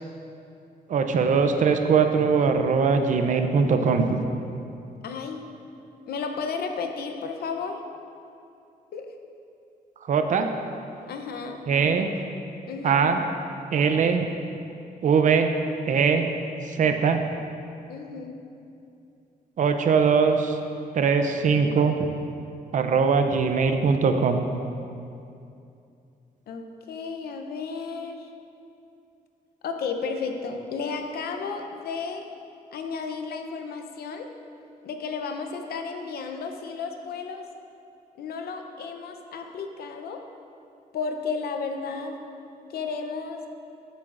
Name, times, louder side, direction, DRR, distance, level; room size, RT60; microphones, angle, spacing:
voice 1, 0.9-4.2 10.1-10.5 11.7-12.1 12.8-13.2 13.7-14.3 15.0-15.5 15.9-16.3 16.7-17.2 19.6-20.6 20.9-22.1 22.7-24.4, right 5 dB, 55° right, 6 dB, 0.5 m, -21 dB
voice 2, 5.0-5.4 6.1-7.8 8.9-9.1 11.1-11.6 12.7-13.1 17.9-18.4 26.5-28.3 29.6-32.3 32.7-34.3 34.8-37.5 38.2-40.2 40.9-42.2 42.7-43.4, left 5 dB, 80° left, 5 dB, 0.7 m, -33 dB
12.5 x 7.4 x 2.5 m, 2.6 s
wide cardioid pair, 150°, 16 cm